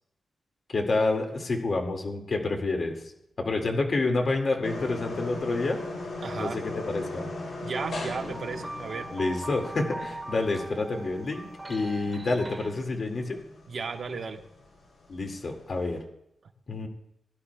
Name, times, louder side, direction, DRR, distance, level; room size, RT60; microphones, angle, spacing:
voice 1, 0.7-3.0 3.4-5.8 6.3-7.3 9.1-13.4 15.1-16.0 16.7-16.9, left 3 dB, 50° left, 2 dB, 2.1 m, -28 dB
sound 1, 4.6-16.0, left 2 dB, 70° left, 3.7 m, -39 dB
voice 2, 6.2-6.6 7.6-9.1 13.7-14.4, right 4 dB, 55° right, 4 dB, 1.2 m, -34 dB
sound 2, 8.3-12.7, right 2 dB, 20° right, 1.5 m, -41 dB
21.0 x 11.5 x 2.3 m, 0.79 s
cardioid pair, 100°, 0 cm